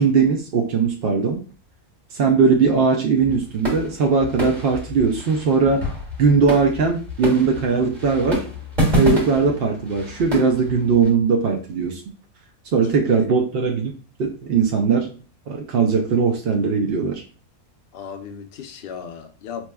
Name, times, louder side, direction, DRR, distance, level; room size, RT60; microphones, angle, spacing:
voice 1, 0.0-1.4 2.1-5.8 6.2-8.4 9.0-12.0 12.7-13.9 14.2-15.1 15.5-17.2, right 5 dB, 65° right, 0.6 m, -19 dB
sound 1, 3.2-11.1, equal, 30° right, 1.5 m, -28 dB
voice 2, 12.8-13.3 17.9-19.7, left 7 dB, 70° left, 0.5 m, -36 dB
4.3 x 3.0 x 2.2 m
omnidirectional pair, 1.5 m